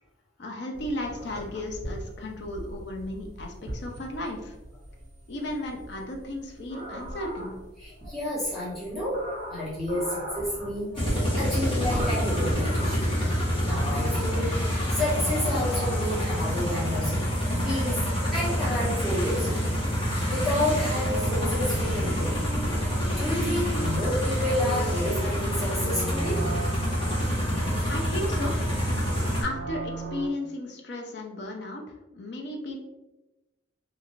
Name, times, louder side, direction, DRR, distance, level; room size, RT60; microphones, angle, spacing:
voice 1, 0.4-4.5 5.3-7.5 27.9-28.6 29.4-31.8 32.1-32.8, left 1 dB, 60° left, 1 dB, 0.5 m, -34 dB
sound 1, 0.7-13.0, equal, 40° right, 0.9 m, -39 dB
voice 2, 7.8-9.2 9.5-13.1 13.6-14.5 14.9-17.2 17.6-19.6 20.3-26.4, left 1 dB, ahead, -11 dB, 1.0 m, -30 dB
sound 2, 10.9-29.4, equal, 25° left, 0.9 m, -27 dB
sound 3, 20.9-30.3, right 3 dB, 55° right, 0.4 m, -37 dB
2.6 x 2.4 x 3.0 m, 1.0 s
head